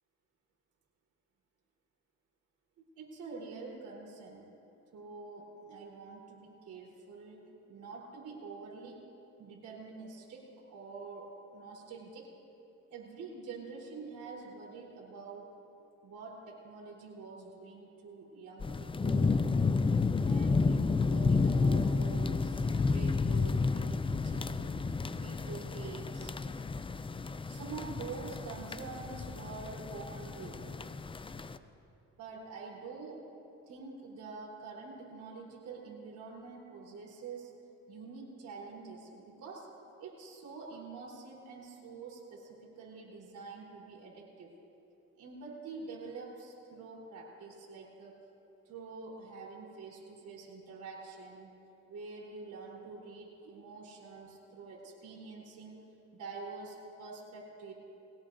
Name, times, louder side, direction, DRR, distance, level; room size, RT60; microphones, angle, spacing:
voice 1, 3.0-4.4 4.9-9.0 9.4-10.4 10.7-12.3 12.9-15.5 16.0-19.4 20.2-24.7 25.1-26.3 27.5-30.7 32.2-33.2 33.7-37.5 37.9-39.7 40.0-44.5 45.2-48.1 48.7-51.5 51.9-55.8 56.1-57.7, right 4 dB, 75° right, -3 dB, 4.0 m, -46 dB
sound 1, 18.6-31.6, left 4 dB, 20° left, 0.4 m, -31 dB
22.0 x 17.0 x 2.7 m, 2.9 s
cardioid pair, 90°, 30 cm